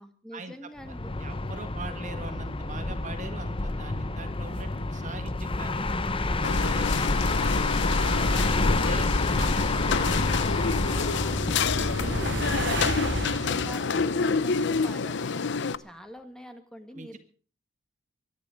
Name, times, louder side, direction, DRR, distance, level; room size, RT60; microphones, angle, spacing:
voice 1, 0.0-1.1 8.7-17.2, equal, 5° left, 6 dB, 1.9 m, -45 dB
sound 1, 0.8-13.5, left 2 dB, 25° left, 0.9 m, -28 dB
voice 2, 0.9-6.0 6.6-7.8 8.3-9.7 13.0-13.2 16.9-17.2, right 3 dB, 40° right, 8 dB, 1.7 m, -43 dB
sound 2, 6.4-15.8, left 5 dB, 60° left, 0.7 m, -28 dB
sound 3, 10.2-15.0, right 3 dB, 60° right, 1.2 m, -36 dB
23.5 x 10.5 x 5.2 m, 0.40 s
head